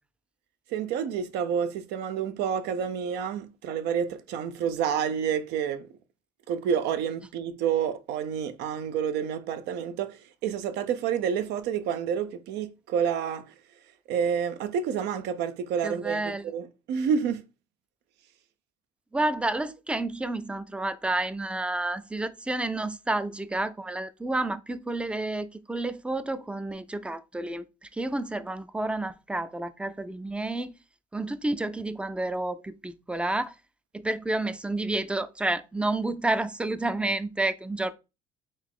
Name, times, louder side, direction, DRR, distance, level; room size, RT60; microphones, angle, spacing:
voice 1, 0.7-5.9 6.5-13.5 14.1-17.4, right 7 dB, 85° right, 0.5 m, -29 dB
voice 2, 15.8-16.4 19.1-30.8 31.1-33.5 33.9-37.9, right 2 dB, 5° right, 0.3 m, -30 dB
3.9 x 2.4 x 3.6 m
cardioid pair, 110°, 17 cm